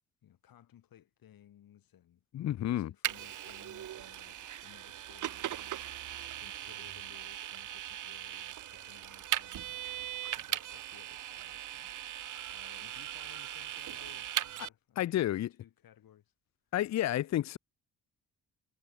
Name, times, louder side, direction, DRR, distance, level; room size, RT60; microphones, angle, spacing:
voice 1, 0.2-6.0 6.4-9.8 10.3-12.1 12.5-16.3, left 11 dB, 85° left, 6.0 m, -60 dB
voice 2, 2.3-2.9 15.0-15.5 16.7-17.6, left 13 dB, 55° left, 0.5 m, -30 dB
Vehicle, 3.0-14.7, right 12 dB, 65° right, 0.7 m, -39 dB
sound 1, 15.5-16.8, right 11 dB, 85° right, 5.3 m, -60 dB
cardioid pair, 90°, 34 cm